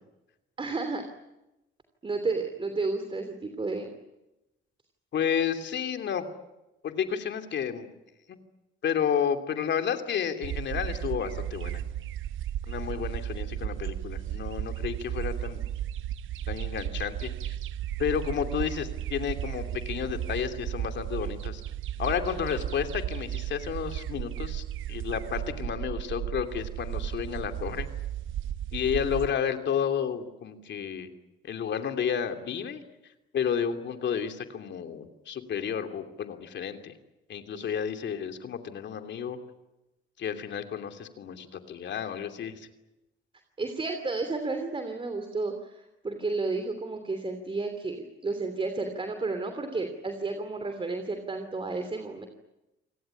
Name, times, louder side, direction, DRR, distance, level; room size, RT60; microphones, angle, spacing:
voice 1, 0.6-1.0 2.0-4.0 37.5-37.6 43.6-52.3, right 3 dB, 25° right, 6 dB, 3.0 m, -32 dB
voice 2, 5.1-6.2 6.8-7.9 8.3-8.4 8.8-11.8 12.7-15.6 16.5-17.6 18.0-21.6 22.0-24.6 24.9-27.9 28.7-31.1 31.4-32.8 33.3-36.9 37.3-39.4 40.2-42.7, left 8 dB, 65° left, 7 dB, 2.9 m, -31 dB
sound 1, 10.4-29.3, right 11 dB, 80° right, 0.9 m, -34 dB
27.5 x 18.5 x 10.0 m, 0.96 s
cardioid pair, 90°, 20 cm